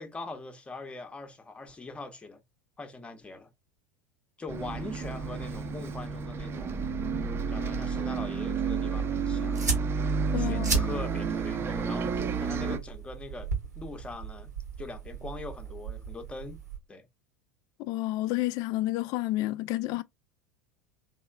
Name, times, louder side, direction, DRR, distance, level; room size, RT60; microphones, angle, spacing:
voice 1, 0.0-2.4 2.8-3.5 4.4-6.9 7.5-9.6 10.4-13.5 13.8-14.5 14.8-16.6 16.9-17.1, left 3 dB, 15° left, 0.7 m, -42 dB
Bus, 4.5-12.8, right 5 dB, 25° right, 0.6 m, -31 dB
sound 1, 6.5-16.8, right 4 dB, 85° right, 1.1 m, -37 dB
voice 2, 10.3-10.7 17.9-20.0, left 17 dB, 45° left, 0.3 m, -30 dB
3.7 x 3.0 x 2.2 m
figure-of-eight pair, 75°, 9 cm